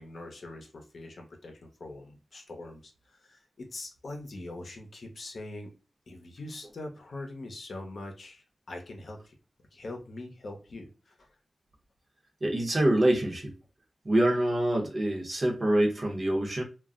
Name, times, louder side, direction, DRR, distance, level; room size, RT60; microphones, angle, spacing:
voice 1, 0.0-5.7 6.1-9.3 9.7-11.3, left 2 dB, 60° left, 3 dB, 0.7 m, -43 dB
voice 2, 12.4-13.5 14.0-16.6, right 1 dB, 35° right, 1 dB, 0.8 m, -25 dB
2.3 x 2.0 x 3.6 m, 0.32 s
wide cardioid pair, 135°, 0 cm